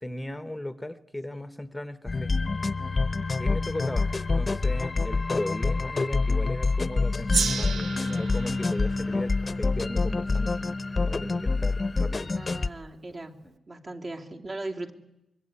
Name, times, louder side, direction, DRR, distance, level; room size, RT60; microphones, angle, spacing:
voice 1, 0.0-2.3 3.3-10.8 11.1-12.4, left 1 dB, 10° left, 12 dB, 1.0 m, -37 dB
sound 1, 2.1-12.7, left 3 dB, 35° left, 0.9 m, -26 dB
voice 2, 4.3-4.7 12.3-13.4 13.7-14.9, right 2 dB, 45° right, 2 dB, 2.8 m, -39 dB
Gong, 7.3-12.0, right 5 dB, 70° right, 1.2 m, -34 dB
25.0 x 22.5 x 9.9 m, 0.93 s
cardioid pair, 75°, 0 cm